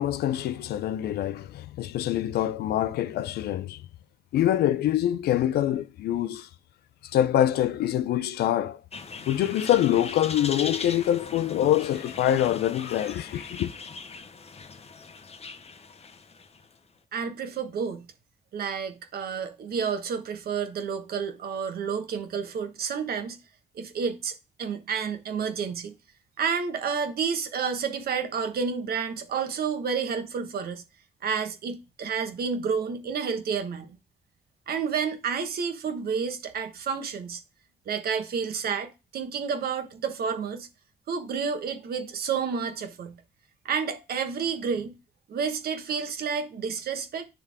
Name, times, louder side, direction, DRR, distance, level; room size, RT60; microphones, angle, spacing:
voice 1, 0.0-3.8 4.3-6.5 7.1-8.8 9.3-13.7, left 11 dB, 85° left, 0.5 m, -25 dB
sound 1, 8.9-16.7, left 5 dB, 40° left, 0.8 m, -40 dB
voice 2, 17.1-18.1 18.5-23.4 23.7-25.9 26.4-30.8 31.2-33.9 34.7-37.4 37.9-40.7 41.1-43.2 43.6-44.9 45.3-47.3, right 6 dB, 75° right, 1.2 m, -30 dB
9.6 x 3.4 x 3.5 m
cardioid pair, 65°, 16 cm